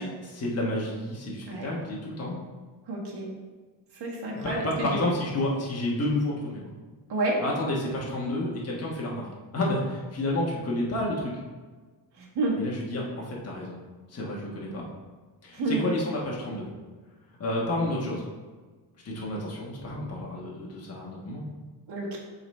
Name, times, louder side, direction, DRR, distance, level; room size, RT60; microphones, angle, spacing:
voice 1, 0.0-2.4 4.4-6.7 7.4-9.3 9.5-11.3 12.5-13.8 14.1-14.8 15.4-16.7 17.4-18.3 19.0-21.4, left 1 dB, 35° left, -4 dB, 1.3 m, -30 dB
voice 2, 2.9-3.3 3.9-5.0 7.1-7.4 12.2-12.6 15.5-15.9 21.9-22.2, right 2 dB, 65° right, -3 dB, 1.7 m, -29 dB
7.8 x 4.0 x 3.2 m, 1.4 s
wide cardioid pair, 140°, 43 cm